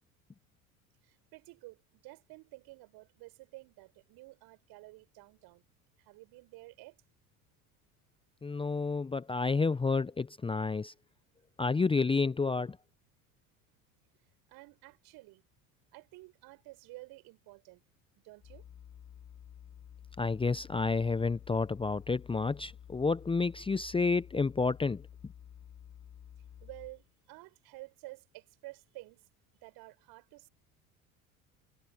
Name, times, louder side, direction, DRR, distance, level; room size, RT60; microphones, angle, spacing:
voice 1, 1.0-5.6 6.0-7.0 14.5-15.4 15.9-17.8 18.2-18.6 26.6-29.3 29.6-30.5, right 22 dB, 60° right, 7.3 m, -51 dB
voice 2, 8.4-10.9 11.6-12.8 20.2-25.0, left 4 dB, 15° left, 0.7 m, -30 dB
sound 1, 18.4-27.1, left 9 dB, 40° left, 7.5 m, -52 dB
hypercardioid pair, 75°, 41 cm